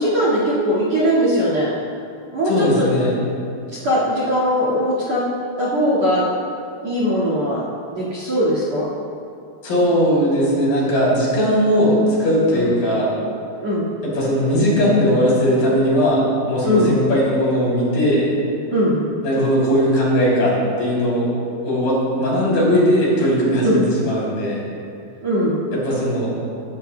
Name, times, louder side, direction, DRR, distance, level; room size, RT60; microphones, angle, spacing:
voice 1, 0.0-1.7 2.3-2.9 3.8-5.3 5.6-6.3 6.8-7.6 7.9-8.9 12.5-12.7 13.6-13.9 16.6-17.0 18.7-19.0 23.6-23.8 25.2-25.7, equal, 45° right, -6 dB, 2.6 m, -20 dB
voice 2, 2.5-3.1 9.6-13.1 14.0-18.3 19.2-21.3 21.6-24.6 25.7-26.3, equal, 55° left, -6 dB, 4.8 m, -18 dB
19.5 x 13.5 x 2.3 m, 2.5 s
omnidirectional pair, 5.2 m